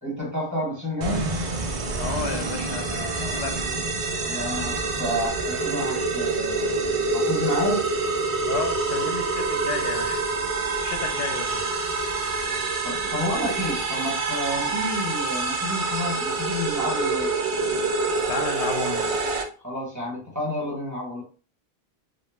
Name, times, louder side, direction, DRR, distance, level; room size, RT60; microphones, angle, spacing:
voice 1, 0.0-1.3 4.2-6.7 7.1-7.8 12.8-17.3 19.6-21.2, left 1 dB, 20° right, -4 dB, 0.9 m, -30 dB
sound 1, 1.0-19.4, right 3 dB, 50° right, 0.4 m, -26 dB
voice 2, 2.0-3.7 8.5-10.2 10.8-11.6 18.3-19.1, left 5 dB, 90° left, 5 dB, 0.9 m, -32 dB
2.3 x 2.1 x 3.0 m, 0.37 s
omnidirectional pair, 1.1 m